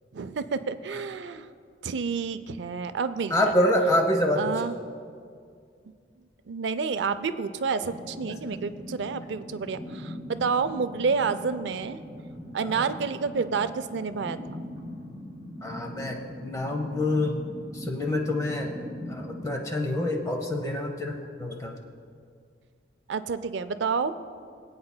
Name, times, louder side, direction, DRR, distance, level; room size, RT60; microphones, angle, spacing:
voice 1, 0.1-1.5 1.8-3.5 4.4-4.7 6.5-12.0 12.5-14.6 23.1-24.1, right 5 dB, 70° right, 12 dB, 0.4 m, -29 dB
voice 2, 3.3-4.6 8.4-8.5 12.6-12.9 15.6-17.5 17.7-18.7 19.1-21.7, left 1 dB, 20° left, 1 dB, 0.9 m, -27 dB
sound 1, 7.9-20.5, equal, 30° right, 2.8 m, -41 dB
23.5 x 8.6 x 2.2 m, 2.2 s
head